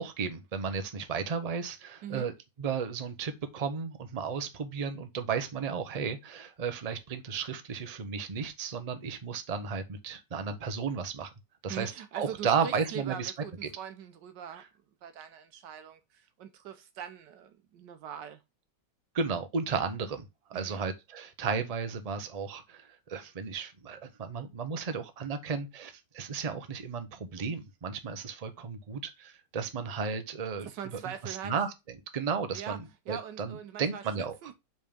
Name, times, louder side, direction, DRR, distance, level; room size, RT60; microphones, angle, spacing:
voice 1, 0.0-11.3 11.6-13.3 13.6-13.7 19.1-30.7 31.0-31.7 32.1-34.3, right 6 dB, 45° right, 0.4 m, -34 dB
voice 2, 11.7-14.7 15.0-18.4 20.5-20.8 30.6-31.5 32.5-32.8 33.1-34.1 34.4-34.5, right 8 dB, 85° right, 1.4 m, -42 dB
5.3 x 3.5 x 5.1 m
omnidirectional pair, 1.9 m